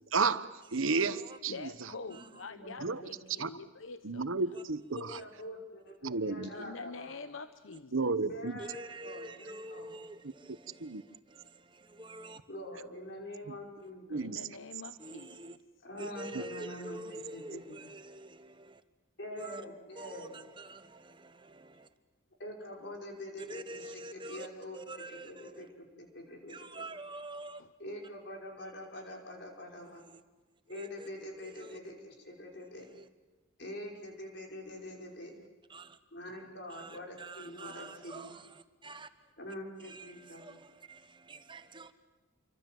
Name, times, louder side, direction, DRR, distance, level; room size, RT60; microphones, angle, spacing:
voice 1, 0.1-1.9 2.8-3.0 3.4-3.5 4.0-5.1 6.0-6.7 7.9-8.6 10.8-11.0 13.5-13.6 14.1-14.4 16.3-16.4, right 4 dB, 85° right, 14 dB, 1.0 m, -32 dB
voice 2, 0.9-1.4 2.1-2.5 4.5-4.6 5.1-5.2 8.6-12.4 13.8-13.9 15.0-15.6 16.0-18.8 19.4-19.6 19.9-21.9 23.4-24.5 24.7-25.7 26.5-27.6 29.9-30.2 30.7-31.1 31.4-31.8 32.7-33.1 35.7-36.0 36.7-39.3 39.8-41.9, right 2 dB, 25° right, 10 dB, 1.2 m, -47 dB
voice 3, 1.5-4.3 6.5-8.1 14.1-15.6 27.6-27.7, left 4 dB, 80° left, 10 dB, 0.9 m, -46 dB
voice 4, 2.1-3.1 5.0-7.2 8.3-9.9 12.5-14.2 15.8-17.8 19.2-20.4 22.4-26.8 27.8-30.0 30.7-32.9 33.6-35.4 36.1-38.2 39.4-40.4, left 1 dB, 55° left, 1 dB, 5.4 m, -45 dB
28.0 x 24.5 x 7.7 m, 1.3 s
head